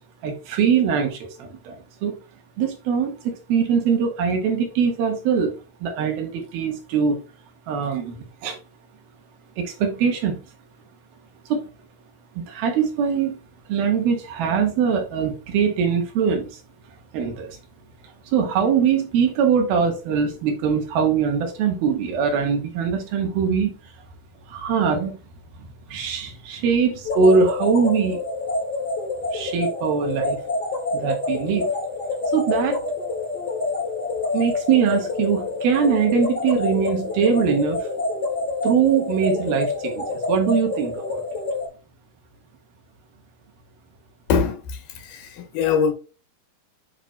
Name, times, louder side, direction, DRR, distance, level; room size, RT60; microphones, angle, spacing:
voice 1, 0.2-1.8 2.0-2.2 2.6-7.2 7.7-8.6 9.6-10.4 11.5-11.7 12.4-13.4 13.7-16.6 17.1-17.6 18.3-23.7 24.5-25.2 25.6-28.2 29.3-30.4 30.9-31.7 32.3-32.8 34.3-37.9 38.6-41.2, right 6 dB, 65° right, 2.8 m, -22 dB
sound 1, 27.0-41.7, left 3 dB, 90° left, 0.9 m, -27 dB
voice 2, 44.3-45.9, left 6 dB, 65° left, 2.5 m, -23 dB
9.1 x 6.0 x 2.3 m
omnidirectional pair, 5.7 m